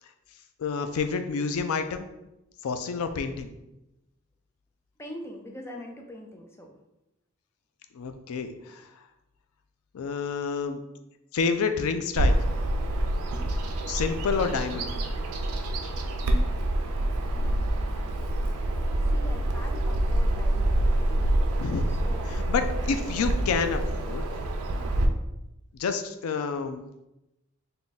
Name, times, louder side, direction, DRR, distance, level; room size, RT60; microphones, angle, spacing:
voice 1, 0.6-2.1 2.6-3.5 7.9-8.9 9.9-10.8 11.3-12.4 13.9-14.9 21.6-21.9 22.3-24.3 25.7-26.8, left 5 dB, 90° left, 8 dB, 0.4 m, -29 dB
voice 2, 5.0-6.7 17.3-18.1 19.1-21.4 21.9-22.3, equal, 10° left, 1 dB, 0.5 m, -43 dB
Bird vocalization bird call bird song, 12.2-25.1, right 1 dB, 90° right, 0.4 m, -26 dB
3.6 x 2.2 x 4.0 m, 0.91 s
head